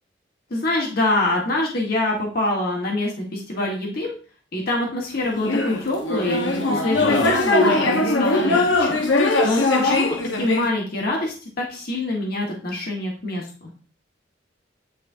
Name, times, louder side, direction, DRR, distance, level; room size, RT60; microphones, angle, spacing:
voice 1, 0.5-4.1 4.5-9.0 9.4-13.7, left 2 dB, 55° left, -1 dB, 1.5 m, -25 dB
sound 1, 5.3-10.7, left 2 dB, 80° left, 1.1 m, -20 dB
9.4 x 4.1 x 2.7 m, 0.38 s
head